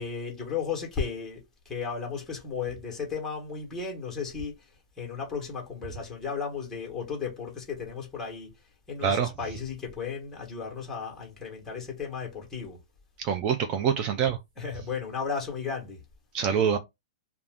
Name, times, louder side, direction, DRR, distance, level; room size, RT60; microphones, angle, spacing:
voice 1, 0.0-4.7 5.0-8.5 8.9-12.8 14.6-16.0, left 6 dB, 10° left, 1.1 m, -34 dB
voice 2, 13.2-14.4 16.3-16.8, right 7 dB, 30° right, 0.4 m, -25 dB
2.4 x 2.3 x 3.4 m
hypercardioid pair, 150°, 4 cm